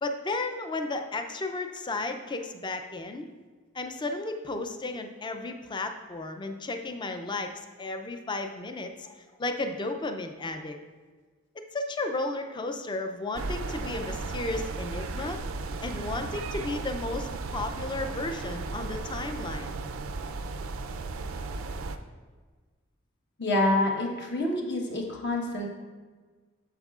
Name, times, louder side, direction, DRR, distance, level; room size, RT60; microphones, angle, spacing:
voice 1, 0.0-3.3 3.7-10.8 11.5-15.4 15.8-19.7, left 2 dB, 20° left, 6 dB, 0.4 m, -34 dB
sound 1, 13.3-22.0, right 3 dB, 80° right, 0.5 m, -35 dB
voice 2, 23.4-25.7, left 1 dB, 60° left, 0 dB, 1.2 m, -27 dB
9.0 x 7.2 x 2.4 m, 1.4 s
head